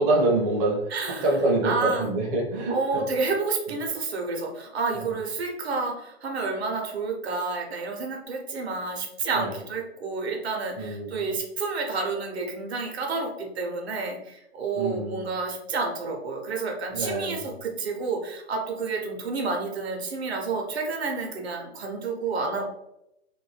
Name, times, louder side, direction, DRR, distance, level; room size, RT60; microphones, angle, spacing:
voice 1, 0.0-3.0 4.9-5.1 9.3-9.6 10.8-11.3 14.7-15.2 16.9-17.5, right 2 dB, 30° right, -1 dB, 0.6 m, -26 dB
voice 2, 0.9-1.3 1.6-2.1 2.7-22.7, right 4 dB, 70° right, 1 dB, 0.9 m, -30 dB
2.5 x 2.2 x 3.2 m, 0.84 s
figure-of-eight pair, 120°, 33 cm